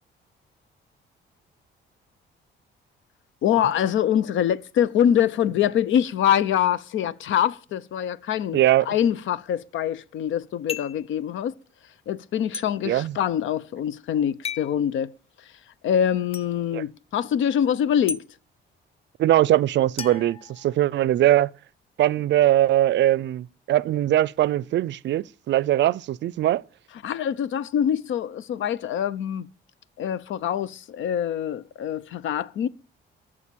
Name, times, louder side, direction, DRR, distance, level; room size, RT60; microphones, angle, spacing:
voice 1, 3.4-8.6 8.9-11.5 12.1-15.1 15.8-18.2 27.0-29.5 30.0-32.7, left 9 dB, 75° left, 0.7 m, -24 dB
voice 2, 8.5-8.9 12.8-13.2 16.7-16.8 19.2-21.5 22.0-26.6, right 13 dB, 65° right, 0.5 m, -21 dB
sound 1, 10.7-11.1 12.5-12.7 14.4-14.7 16.3-16.5 18.1-18.2 20.0-21.1, left 6 dB, 30° left, 0.6 m, -34 dB
14.5 x 5.0 x 8.5 m
cardioid pair, 90°, 20 cm